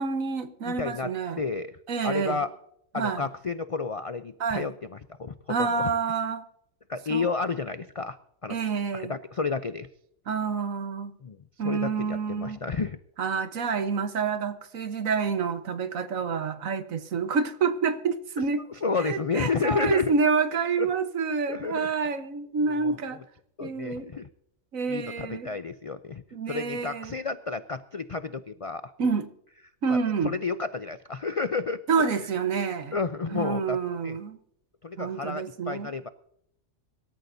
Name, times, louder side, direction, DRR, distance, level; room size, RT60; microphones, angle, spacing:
voice 1, 0.0-1.4 1.9-2.4 2.9-3.2 4.4-4.7 5.5-6.4 7.1-7.2 8.5-9.1 10.3-11.1 11.6-12.6 13.2-18.6 18.9-23.2 23.6-24.1 24.7-25.5 26.3-27.2 29.0-29.3 29.8-30.4 31.9-33.0 33.3-34.4 35.0-35.9, right 5 dB, 80° right, 1.5 m, -28 dB
voice 2, 0.7-1.8 2.0-2.5 2.9-5.9 6.9-8.2 8.4-8.6 8.9-9.9 11.2-11.4 11.6-13.0 18.7-20.1 20.8-20.9 21.5-21.9 22.6-23.0 23.6-24.3 24.9-28.9 29.9-32.1 32.9-33.8 34.0-34.2 34.8-36.1, left 4 dB, 60° left, 0.3 m, -31 dB
24.0 x 13.0 x 2.7 m
omnidirectional pair, 1.4 m